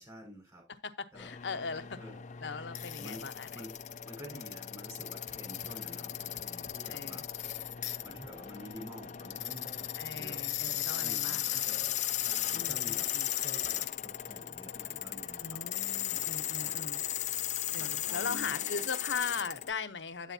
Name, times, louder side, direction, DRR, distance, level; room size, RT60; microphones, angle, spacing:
voice 1, 0.0-0.6 1.1-1.3 2.0-2.2 3.0-3.2 3.5-3.7 4.1-7.4 8.0-13.1 13.3-15.6 16.6-16.9 17.8-18.8, equal, 20° right, 5.7 m, -49 dB
voice 2, 0.7-2.0 2.4-3.6 4.3-4.4 6.9-7.2 10.0-11.7 12.5-13.3 15.4-17.0 17.7-20.3, left 5 dB, 85° left, 0.9 m, -39 dB
sound 1, 1.1-19.7, left 12 dB, 40° left, 0.5 m, -36 dB
9.2 x 8.9 x 2.8 m
head